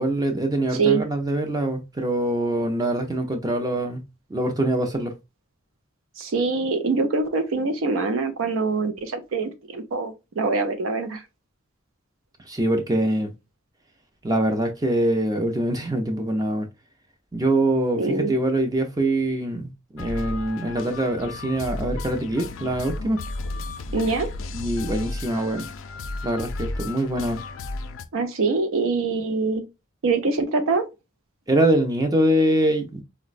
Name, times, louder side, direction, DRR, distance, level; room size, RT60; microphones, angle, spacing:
voice 1, 0.0-4.0 4.3-5.1 12.5-13.3 14.2-16.7 17.3-23.2 24.5-25.7 26.2-27.4 31.5-33.0, right 1 dB, 20° right, 0.4 m, -24 dB
voice 2, 0.7-1.0 6.2-11.2 18.0-18.3 23.9-24.3 28.1-29.7 30.0-30.8, right 4 dB, 85° right, 0.5 m, -24 dB
sound 1, 20.0-28.0, left 2 dB, 80° left, 0.4 m, -33 dB
3.9 x 2.1 x 2.4 m
head